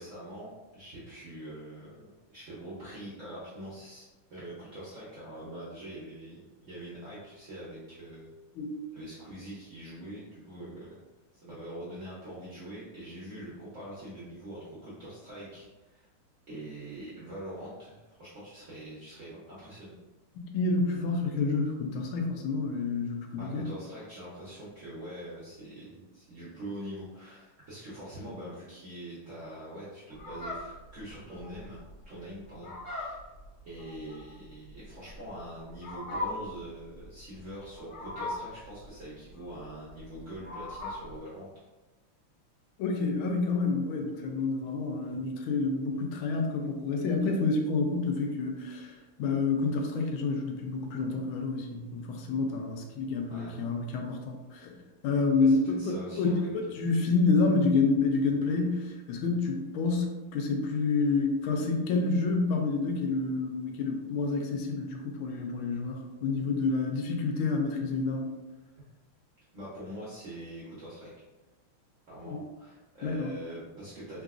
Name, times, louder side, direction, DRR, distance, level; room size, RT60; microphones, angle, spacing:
voice 1, 0.0-8.3 8.9-11.0 11.4-16.1 16.5-20.0 23.4-31.8 32.0-33.2 33.6-41.5 53.3-53.6 55.4-56.5 69.5-71.1 72.1-74.2, right 1 dB, 65° right, -8 dB, 0.7 m, -44 dB
voice 2, 20.4-23.7 42.8-54.8 55.0-55.8 56.1-68.3 72.2-72.4 73.0-73.3, left 3 dB, 80° left, 2 dB, 1.4 m, -28 dB
Fowl, 30.1-41.2, left 2 dB, 55° left, 1.4 m, -40 dB
3.8 x 2.4 x 2.4 m, 1.1 s
omnidirectional pair, 2.3 m